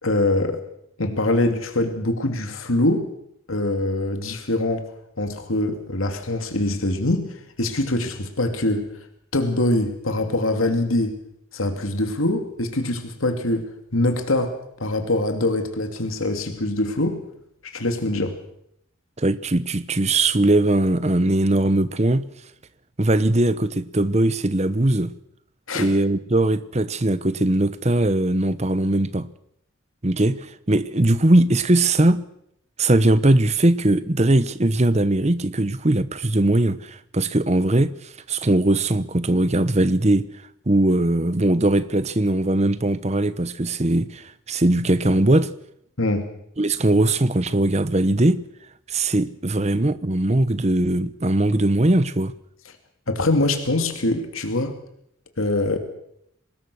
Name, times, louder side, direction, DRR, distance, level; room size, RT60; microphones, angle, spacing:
voice 1, 0.0-0.6 1.0-3.1 3.5-4.9 5.2-8.9 9.3-11.2 11.5-17.2 17.6-18.4 25.7-25.9 46.0-46.3 53.1-54.8 55.4-55.8, left 2 dB, 85° left, 2.7 m, -23 dB
voice 2, 19.2-22.3 23.0-25.1 25.7-29.3 30.0-32.2 32.8-40.3 40.7-45.5 46.6-48.4 48.9-52.3, right 1 dB, 35° right, 1.0 m, -20 dB
25.0 x 20.0 x 6.4 m
head